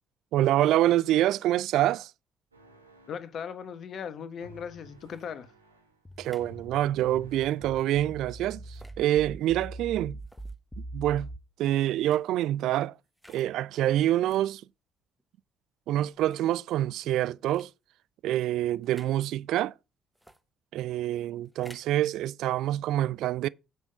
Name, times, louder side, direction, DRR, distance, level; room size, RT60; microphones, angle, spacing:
voice 1, 0.3-2.1 6.2-10.2 10.9-11.3 11.6-13.0 13.3-14.6 15.9-17.7 18.2-19.7 20.7-23.5, right 13 dB, 60° right, 0.3 m, -26 dB
sound 1, 2.5-3.4 4.4-6.0 6.4-8.3, right 1 dB, 90° right, 1.1 m, -53 dB
voice 2, 3.1-5.5, left 7 dB, 50° left, 1.1 m, -38 dB
sound 2, 5.0-5.3 6.1-6.5 7.3-7.6 8.6-9.0 10.2-10.5 11.9-12.3 13.2-13.5 14.2-14.5 15.2-15.3 16.1-16.5 17.5-17.7 18.8-19.2 20.1-20.4 21.4-22.0, equal, 5° right, 1.2 m, -54 dB
sound 3, 6.1-11.4, right 1 dB, 15° left, 0.9 m, -42 dB
8.1 x 5.7 x 5.1 m
figure-of-eight pair, 45°, 0 cm